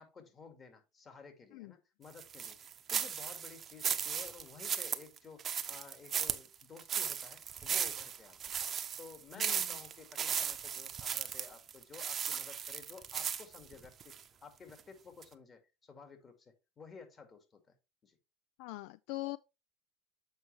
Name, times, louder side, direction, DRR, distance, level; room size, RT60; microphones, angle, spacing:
voice 1, 0.0-2.6 2.9-8.6 9.0-14.1 14.4-17.7 18.0-18.2, left 5 dB, 30° left, 2.2 m, -54 dB
sound 1, 2.2-14.2 14.7-14.8 15.2-15.3, right 8 dB, 35° right, 0.8 m, -36 dB
voice 2, 18.6-19.4, left 19 dB, 70° left, 0.3 m, -42 dB
8.0 x 5.2 x 3.3 m
supercardioid pair, 115°, 0 cm